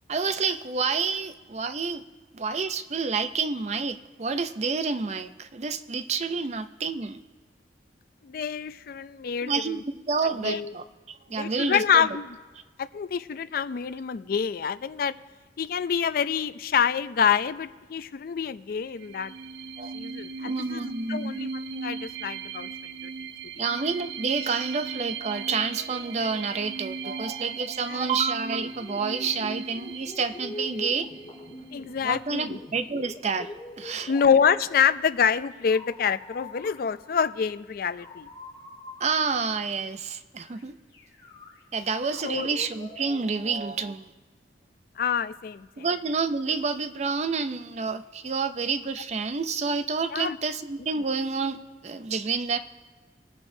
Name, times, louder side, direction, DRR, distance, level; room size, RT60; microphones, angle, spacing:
voice 1, 0.1-2.0 2.3-7.2 9.4-9.8 10.1-12.1 19.8-19.9 20.4-21.4 23.6-31.1 32.0-33.5 33.8-34.1 39.0-40.7 41.7-44.1 45.8-51.6 51.8-52.6, right 4 dB, 40° right, 11 dB, 0.5 m, -29 dB
voice 2, 8.2-9.7 10.4-10.7 11.4-12.4 12.8-15.1 15.6-19.3 19.9-21.5 21.8-22.7 27.9-28.1 31.7-32.6 34.1-38.3 42.2-42.5 45.0-45.9 50.1-50.4, left 7 dB, 55° left, 15 dB, 0.4 m, -26 dB
sound 1, 18.9-32.3, right 5 dB, 90° right, 0.6 m, -38 dB
sound 2, 28.6-34.8 35.5-37.3 37.9-39.7 40.4-40.6 40.9-43.2, left 2 dB, 25° left, 3.5 m, -44 dB
21.0 x 8.5 x 2.7 m, 1.4 s
head